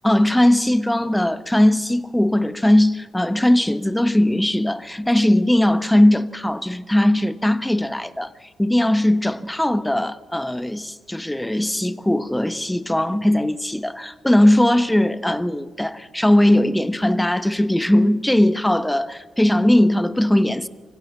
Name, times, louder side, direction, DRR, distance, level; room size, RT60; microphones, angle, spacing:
voice 1, 0.0-20.7, left 1 dB, 10° left, 1.3 m, -19 dB
25.0 x 16.0 x 7.5 m
supercardioid pair, 55°, 0 cm